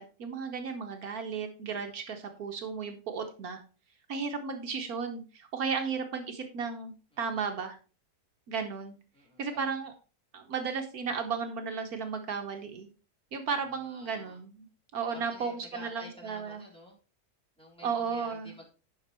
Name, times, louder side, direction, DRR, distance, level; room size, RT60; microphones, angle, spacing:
voice 1, 0.0-3.6 4.1-7.8 8.5-8.9 9.4-9.9 10.3-12.9 13.3-14.7 14.9-16.6 17.8-18.5, right 5 dB, 70° right, 5 dB, 1.5 m, -34 dB
voice 2, 9.1-9.6 13.7-14.4 15.1-17.0 17.6-18.7, left 1 dB, 5° left, -3 dB, 3.6 m, -51 dB
10.5 x 6.0 x 4.3 m, 0.35 s
omnidirectional pair, 1.7 m